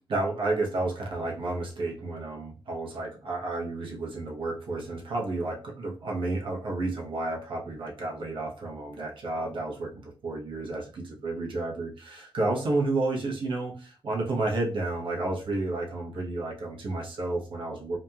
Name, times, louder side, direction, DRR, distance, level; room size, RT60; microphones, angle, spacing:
voice 1, 0.1-18.0, right 2 dB, 65° right, -2 dB, 1.0 m, -31 dB
3.0 x 2.5 x 2.3 m, 0.38 s
cardioid pair, 80°, 9 cm